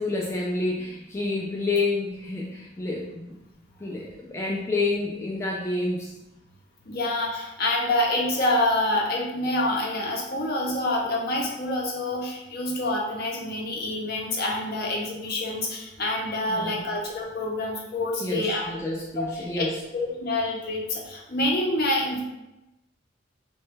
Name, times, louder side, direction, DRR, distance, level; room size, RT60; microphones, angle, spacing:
voice 1, 0.0-3.4 3.8-6.1 16.5-16.9 18.2-19.8, left 2 dB, 15° left, -3 dB, 0.3 m, -29 dB
voice 2, 6.9-19.6 19.9-22.2, left 1 dB, 55° left, -1 dB, 0.6 m, -27 dB
3.0 x 2.2 x 3.1 m, 0.97 s
head